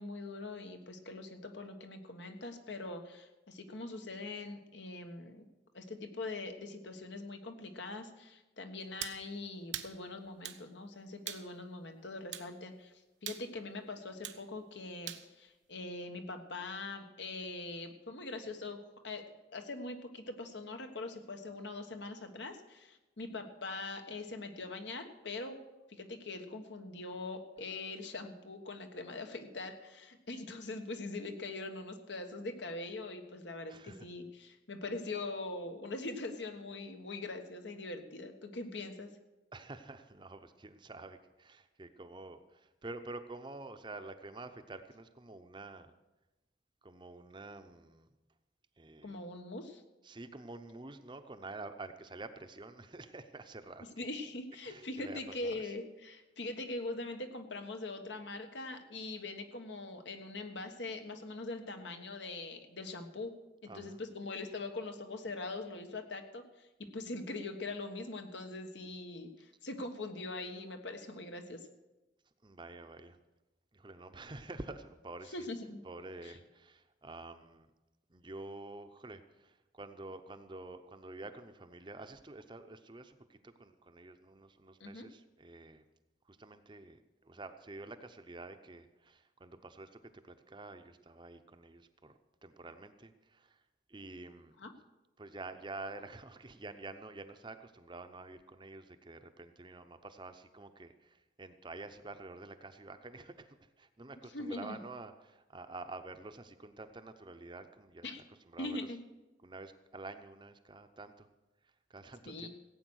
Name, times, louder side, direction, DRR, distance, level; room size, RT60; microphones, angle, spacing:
voice 1, 0.0-5.4 5.7-12.9 13.2-25.6 25.9-39.1 49.0-49.8 54.0-63.3 63.6-66.7 66.9-71.7 75.2-75.8 76.2-76.4 84.8-85.1 94.6-94.7 104.3-104.8 108.0-108.2 108.6-109.0 112.2-112.5, left 2 dB, 75° left, 6 dB, 1.4 m, -42 dB
sound 1, 9.0-9.2 9.7-9.9 10.4-10.6 11.3-11.5 12.3-12.5 13.3-13.5 14.2-14.4 15.1-15.3, right 11 dB, 80° right, 0.9 m, -41 dB
voice 2, 33.7-34.1 39.5-45.9 46.8-48.1 48.8-49.2 50.0-53.9 54.6-55.7 63.7-64.0 72.4-73.2 73.7-75.5 75.8-77.7 78.1-85.8 86.3-93.6 93.9-94.5 95.2-108.1 108.5-108.8 109.4-111.3 111.9-112.5, right 2 dB, 25° right, 9 dB, 0.7 m, -48 dB
16.5 x 8.7 x 6.3 m, 1.1 s
head